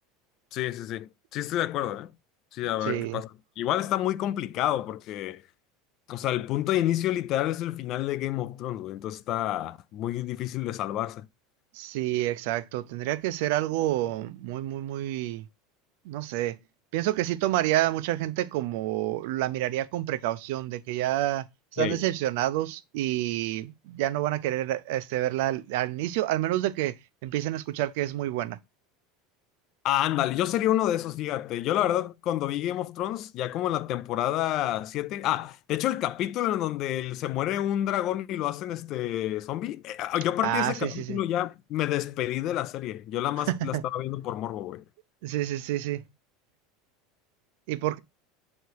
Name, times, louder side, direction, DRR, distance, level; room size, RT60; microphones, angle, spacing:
voice 1, 0.5-2.1 2.5-3.3 3.6-5.4 6.1-11.3 21.8-22.0 29.8-44.8, left 13 dB, 40° left, 0.3 m, -29 dB
voice 2, 2.9-3.2 11.7-15.4 16.1-16.6 16.9-21.4 21.7-28.6 40.4-41.2 43.5-43.8 45.2-46.0 47.7-48.0, right 14 dB, 70° right, 0.5 m, -28 dB
8.0 x 3.2 x 4.5 m
supercardioid pair, 155°, 0 cm